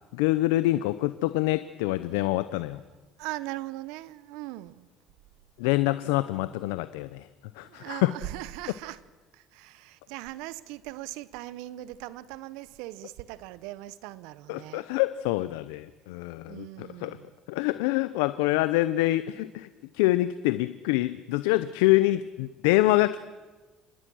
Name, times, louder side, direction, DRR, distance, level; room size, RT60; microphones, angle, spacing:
voice 1, 0.1-2.8 5.6-7.3 7.6-8.1 14.5-17.2 17.5-19.7 19.9-23.2, left 17 dB, 85° left, 0.6 m, -26 dB
voice 2, 3.2-4.9 7.6-9.0 9.3-14.9 16.5-17.3, right 16 dB, 80° right, 0.9 m, -40 dB
26.0 x 20.5 x 6.2 m
supercardioid pair, 90°, 0 cm